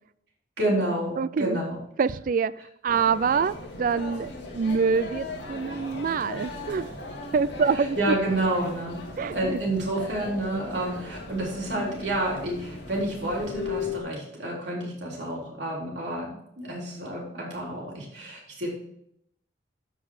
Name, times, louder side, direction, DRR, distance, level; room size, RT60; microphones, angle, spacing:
voice 1, 0.6-1.8 7.7-9.0 9.3-18.7, right 1 dB, 65° right, -3 dB, 3.7 m, -29 dB
voice 2, 1.2-1.6 2.0-2.5 2.8-6.9 7.3-8.1 9.2-9.6, right 5 dB, 45° right, 17 dB, 0.3 m, -25 dB
sound 1, 2.9-14.0, left 3 dB, 70° left, 2.3 m, -38 dB
13.0 x 5.3 x 4.8 m, 0.76 s
head